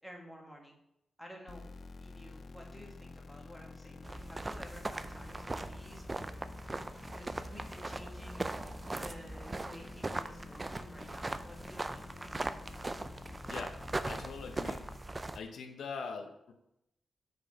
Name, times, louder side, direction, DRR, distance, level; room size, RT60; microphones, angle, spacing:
voice 1, 0.0-0.7 1.2-1.7 2.0-6.3 7.1-12.1, equal, ahead, 0 dB, 1.9 m, -52 dB
sound 1, 1.5-15.0, left 4 dB, 50° left, 0.4 m, -50 dB
sound 2, 4.0-15.4, right 2 dB, 25° right, 0.5 m, -40 dB
voice 2, 13.4-13.7 14.0-14.8 15.3-16.5, left 5 dB, 90° left, 5 dB, 0.9 m, -42 dB
6.3 x 4.9 x 5.3 m, 0.81 s
cardioid pair, 95°, 0 cm